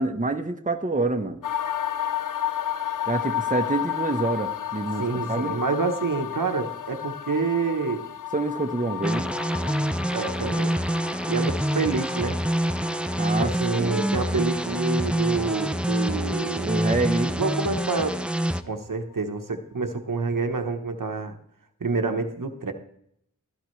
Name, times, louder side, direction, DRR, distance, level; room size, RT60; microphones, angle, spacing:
voice 1, 0.0-1.4 3.1-5.5 8.3-9.3 13.2-13.5 13.8-14.1 16.6-17.3, right 2 dB, 25° right, 5 dB, 1.0 m, -27 dB
sound 1, 1.4-17.4 17.7-17.8, left 10 dB, 75° left, 0.6 m, -33 dB
voice 2, 5.0-8.1 9.6-10.8 11.3-12.4 13.4-16.8 17.2-18.2 18.6-21.3 21.8-22.7, right 4 dB, 75° right, 5 dB, 1.2 m, -28 dB
sound 2, 9.0-18.6, right 1 dB, 5° right, 0.6 m, -26 dB
16.5 x 12.5 x 3.2 m, 0.72 s
wide cardioid pair, 40°, 32 cm